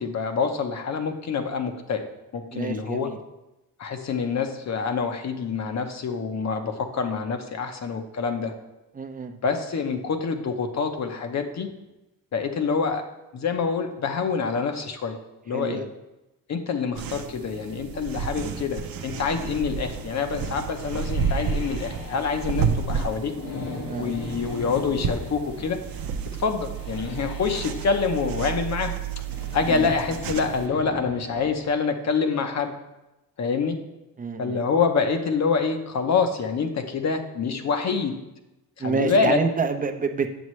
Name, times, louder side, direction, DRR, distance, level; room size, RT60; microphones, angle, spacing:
voice 1, 0.0-2.1 2.3-3.1 3.8-8.5 9.4-11.7 12.3-13.0 13.3-15.2 15.5-15.8 16.5-23.3 24.0-25.8 26.4-28.9 29.5-32.8 33.4-33.8 34.4-38.2 38.8-39.4, left 5 dB, 50° left, 6 dB, 0.9 m, -26 dB
voice 2, 2.5-3.2 8.9-9.3 15.5-15.9 23.8-24.1 29.7-29.9 34.2-34.6 38.8-40.4, right 5 dB, 25° right, 7 dB, 0.6 m, -28 dB
sound 1, 16.9-30.7, right 6 dB, 70° right, 0.7 m, -31 dB
sound 2, 19.2-31.7, left 2 dB, 90° left, 1.6 m, -40 dB
8.1 x 7.0 x 3.2 m, 0.97 s
cardioid pair, 115°, 36 cm